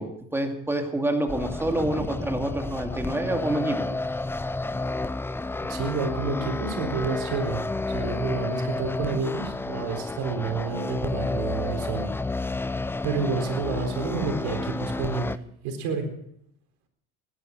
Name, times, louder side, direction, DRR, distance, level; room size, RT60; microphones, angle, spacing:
voice 1, 0.0-3.9, right 1 dB, 10° right, 4 dB, 2.4 m, -27 dB
sound 1, 1.3-15.4, left 2 dB, 10° left, 0.5 m, -31 dB
voice 2, 5.6-7.6 7.9-12.1 13.0-15.3 15.6-16.0, right 5 dB, 80° right, 4 dB, 4.1 m, -29 dB
17.0 x 11.5 x 6.1 m, 0.74 s
cardioid pair, 105°, 29 cm